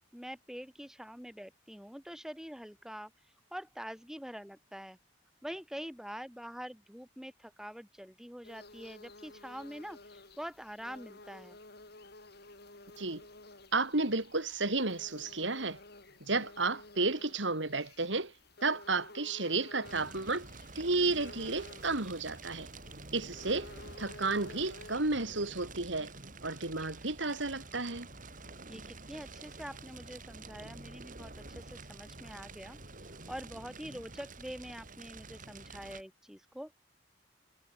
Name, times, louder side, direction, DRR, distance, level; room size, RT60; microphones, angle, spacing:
voice 1, 0.1-3.1 3.5-5.0 5.4-11.6 28.7-32.8 33.3-36.7, equal, 5° right, 4.8 m, -45 dB
sound 1, 8.4-24.9, left 2 dB, 60° left, 7.2 m, -53 dB
voice 2, 13.7-15.8 16.2-18.3 18.6-20.5 20.8-22.7 23.1-23.7 24.0-26.1 26.4-28.1, right 3 dB, 80° right, 4.0 m, -32 dB
Fire, 19.8-36.0, right 3 dB, 45° right, 4.6 m, -49 dB
head